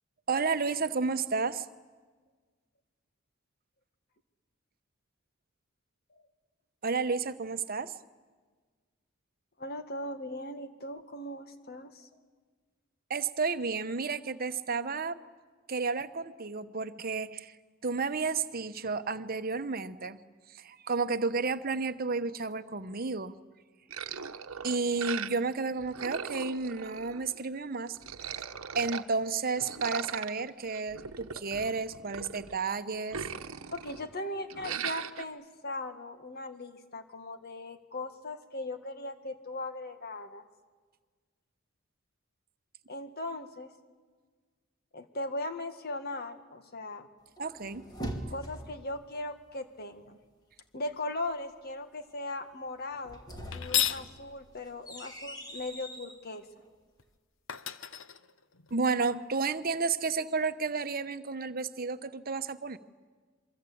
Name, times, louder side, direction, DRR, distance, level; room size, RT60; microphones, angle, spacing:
voice 1, 0.3-1.7 6.8-7.9 13.1-15.2 15.7-17.6 17.8-20.2 20.5-23.4 24.6-28.4 28.7-33.3 47.4-47.9 48.2-48.3 58.7-62.8, right 4 dB, 45° right, 11 dB, 1.0 m, -32 dB
voice 2, 9.6-12.2 33.7-40.4 42.9-43.7 44.9-47.1 48.3-50.2 50.7-53.2 53.5-56.4, left 2 dB, 50° left, 8 dB, 1.8 m, -38 dB
sound 1, 23.9-25.5 25.8-27.5 27.9-29.0 29.6-32.6 32.9-34.2 34.5-35.2, right 7 dB, 90° right, 1.1 m, -39 dB
sound 2, 47.4-48.9 52.9-56.2, right 1 dB, 20° left, 2.6 m, -42 dB
sound 3, 53.5-54.1 57.0-57.1 57.5-58.9, left 11 dB, 65° left, 0.9 m, -32 dB
27.0 x 23.5 x 8.6 m, 1.4 s
head